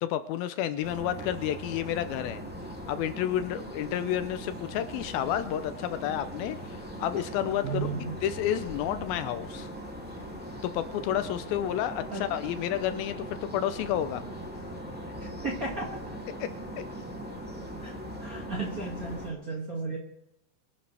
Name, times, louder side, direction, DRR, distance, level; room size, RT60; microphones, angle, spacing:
voice 1, 0.0-2.4 2.9-7.9 8.2-9.7 10.6-14.2 16.4-16.8, left 11 dB, 80° left, 11 dB, 2.4 m, -30 dB
sound 1, 0.8-19.3, equal, 5° right, 1.5 m, -40 dB
voice 2, 7.6-8.1 12.1-12.2 15.4-16.2 17.8-17.9 18.2-20.0, right 4 dB, 30° right, -3 dB, 1.8 m, -34 dB
24.0 x 11.5 x 3.4 m, 0.82 s
omnidirectional pair, 4.5 m